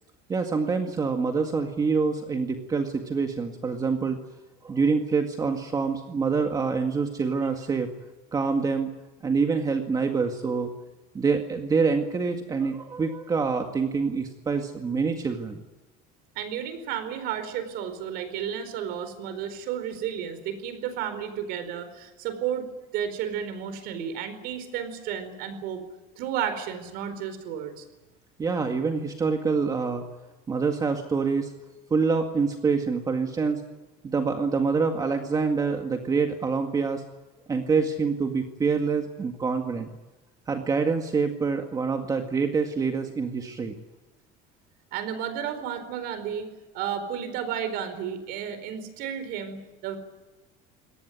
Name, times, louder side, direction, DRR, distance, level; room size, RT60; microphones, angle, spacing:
voice 1, 0.3-4.2 4.6-7.9 8.3-8.9 9.2-10.7 11.1-15.6 28.4-30.0 30.5-31.5 31.9-33.6 34.0-37.0 37.5-39.9 40.5-43.8, right 5 dB, 20° right, 4 dB, 1.9 m, -26 dB
voice 2, 16.3-22.7 22.9-25.8 26.2-27.8 44.9-46.5 46.7-50.0, right 8 dB, 65° right, 10 dB, 4.5 m, -32 dB
24.5 x 18.5 x 9.4 m, 1.1 s
cardioid pair, 155°, 17 cm